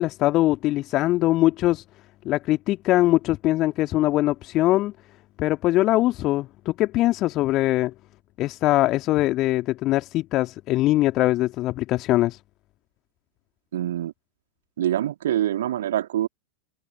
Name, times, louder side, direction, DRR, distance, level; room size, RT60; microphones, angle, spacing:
voice 1, 0.0-1.8 2.2-4.9 5.4-7.9 8.4-12.4, left 16 dB, 35° left, 2.2 m, -22 dB
voice 2, 13.7-14.1 14.8-16.3, right 12 dB, 60° right, 2.6 m, -25 dB
figure-of-eight pair, 90°, 0 cm